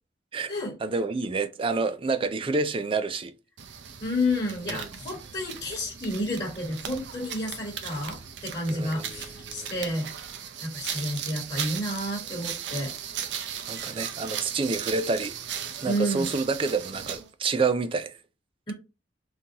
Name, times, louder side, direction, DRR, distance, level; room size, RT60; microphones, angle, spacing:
voice 1, 0.8-3.3 4.7-4.9 8.7-9.7 13.7-15.4 15.8-18.1, right 4 dB, 30° right, 0.3 m, -28 dB
sound 1, 3.6-17.3, right 8 dB, 90° right, 0.5 m, -37 dB
voice 2, 4.0-10.1 10.6-12.9 15.8-16.3 18.7-18.8, left 1 dB, 30° left, 1.3 m, -30 dB
3.7 x 2.6 x 2.8 m
head